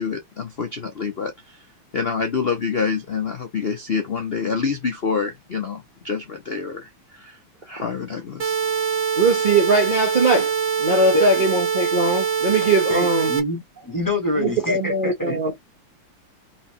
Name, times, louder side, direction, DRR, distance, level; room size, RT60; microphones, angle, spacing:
voice 1, 0.0-1.6 1.9-8.6, left 5 dB, 80° left, 0.5 m, -27 dB
sound 1, 8.4-13.4, right 7 dB, 40° right, 0.8 m, -23 dB
voice 2, 9.2-10.5 10.8-13.3 14.4-15.5, right 2 dB, 60° right, 0.5 m, -20 dB
voice 3, 12.9-15.4, left 1 dB, 10° left, 1.2 m, -25 dB
4.3 x 3.6 x 2.9 m
omnidirectional pair, 2.4 m